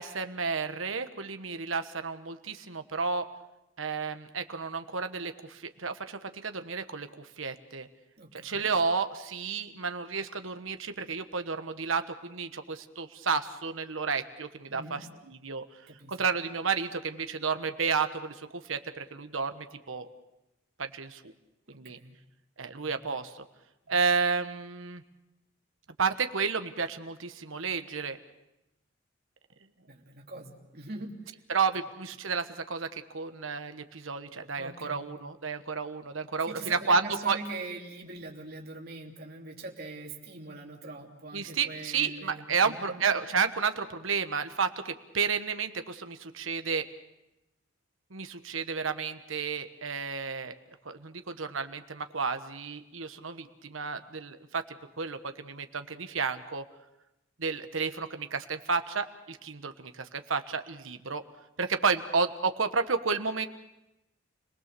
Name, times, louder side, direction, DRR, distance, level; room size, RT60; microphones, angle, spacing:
voice 1, 0.0-3.3 3.8-7.9 8.4-15.0 15.3-15.6 16.1-20.1 20.8-21.3 21.7-22.0 22.6-23.4 23.9-25.0 26.0-28.2 31.5-37.4 41.3-46.9 48.1-50.5 50.8-54.6 55.0-56.6 57.4-61.2 61.6-63.5, right 5 dB, 75° right, 9 dB, 1.3 m, -31 dB
voice 2, 8.2-8.7 14.7-15.1 15.9-16.2 21.7-22.2 22.8-23.0 23.9-24.0 29.9-31.4 34.6-35.1 36.5-43.1, right 2 dB, 50° right, 1 dB, 3.1 m, -43 dB
29.5 x 19.5 x 6.8 m, 0.93 s
head